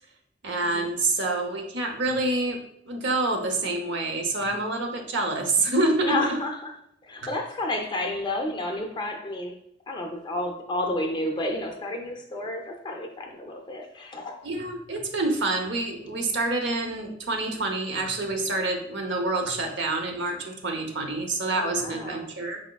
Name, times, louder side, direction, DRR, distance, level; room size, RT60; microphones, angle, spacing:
voice 1, 0.4-2.6 2.9-6.1 14.4-22.6, right 2 dB, 65° right, 3 dB, 0.7 m, -27 dB
voice 2, 6.0-6.7 7.1-9.6 9.9-14.4 21.6-22.3, left 1 dB, 25° left, 3 dB, 0.5 m, -31 dB
4.8 x 3.4 x 2.2 m, 0.72 s
head